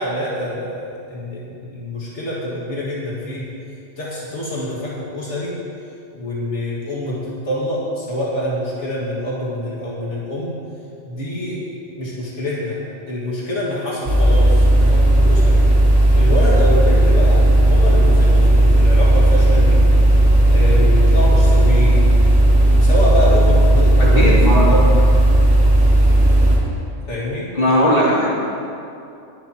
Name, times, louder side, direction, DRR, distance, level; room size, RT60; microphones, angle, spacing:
voice 1, 0.0-3.5 4.0-5.5 6.1-7.2 7.4-10.5 11.1-11.6 12.0-12.8 13.1-15.6 16.1-19.8 20.5-22.1 22.8-24.9 27.1-27.5, left 1 dB, 75° left, -7 dB, 2.4 m, -25 dB
sound 1, 14.1-26.6, right 1 dB, 70° right, 4.2 m, -13 dB
voice 2, 24.1-24.6 27.5-28.3, equal, 50° left, -6 dB, 2.8 m, -17 dB
21.0 x 11.0 x 3.0 m, 2.6 s
omnidirectional pair, 1.2 m